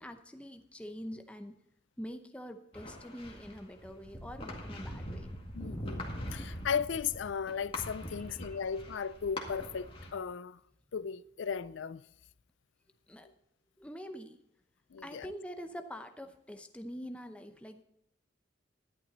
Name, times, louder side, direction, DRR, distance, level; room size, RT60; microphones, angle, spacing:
voice 1, 0.0-1.5 2.0-5.3 8.5-8.6 13.1-13.3 13.8-14.4 15.0-17.8, equal, 5° left, 0.7 m, -45 dB
sound 1, 2.7-10.1, left 1 dB, 30° left, 1.9 m, -43 dB
voice 2, 5.6-10.6 10.9-12.0 14.9-15.3, left 6 dB, 75° left, 0.4 m, -36 dB
12.0 x 11.0 x 4.0 m
head